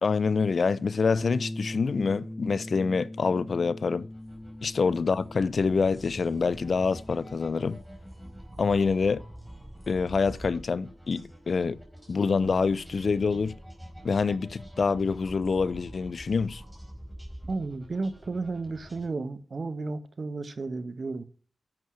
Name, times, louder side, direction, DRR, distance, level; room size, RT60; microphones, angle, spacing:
voice 1, 0.0-4.1 4.6-7.8 8.6-9.2 9.9-11.8 12.1-13.5 14.0-16.6, left 4 dB, 65° left, 0.6 m, -26 dB
Bass guitar, 1.2-7.4, left 1 dB, 10° left, 0.5 m, -41 dB
sound 1, 4.0-19.1, equal, 5° right, 4.7 m, -46 dB
voice 2, 17.5-21.2, right 3 dB, 50° right, 1.3 m, -33 dB
11.0 x 7.9 x 6.4 m
wide cardioid pair, 105°, 0 cm